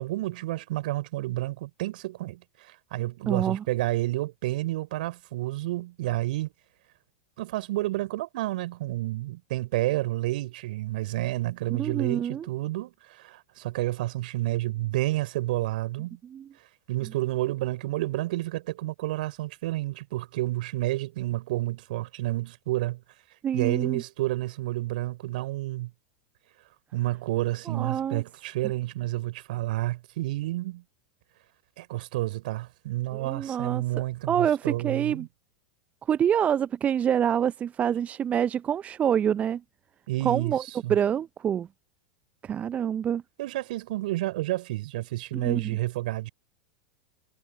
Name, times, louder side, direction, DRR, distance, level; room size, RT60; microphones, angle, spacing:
voice 1, 0.0-6.5 7.4-16.2 16.9-23.0 23.5-25.9 26.9-30.8 31.8-35.3 40.1-40.5 40.8-40.9 43.4-46.3, right 17 dB, 60° right, 3.5 m, -30 dB
voice 2, 3.3-3.6 11.7-12.5 16.2-16.5 23.4-24.0 27.7-28.2 33.1-35.3 36.0-39.6 40.2-40.6 40.9-41.7 42.4-43.2 45.3-45.8, right 9 dB, 25° right, 0.5 m, -26 dB
figure-of-eight pair, 85°, 5 cm